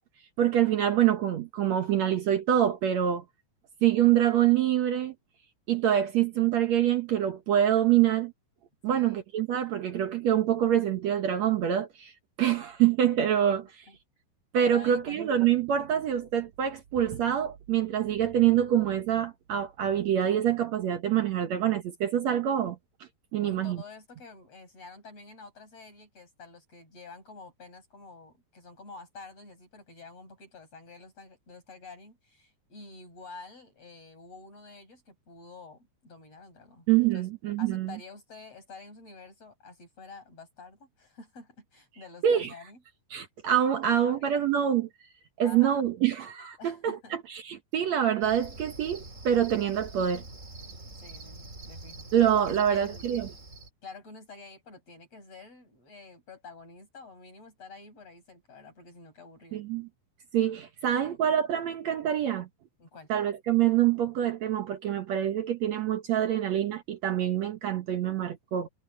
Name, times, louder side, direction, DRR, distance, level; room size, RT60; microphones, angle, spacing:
voice 1, 0.4-3.2 3.8-5.1 5.7-8.3 8.8-12.1 12.4-13.8 14.5-22.8 23.3-23.8 36.9-38.0 42.2-42.5 43.1-44.9 45.4-50.2 52.1-53.3 59.5-59.9 60.3-62.5 63.1-68.7, right 10 dB, 70° right, 1.7 m, -25 dB
voice 2, 8.9-9.2 13.9-14.0 14.7-15.2 23.4-37.3 37.6-42.8 44.1-44.5 45.4-45.8 46.6-47.2 50.9-52.1 52.5-53.3 53.8-59.6 61.0-61.2 62.8-63.1, left 3 dB, 35° left, 8.9 m, -49 dB
Cricket, 48.2-53.7, right 2 dB, 20° right, 3.2 m, -45 dB
omnidirectional pair, 4.7 m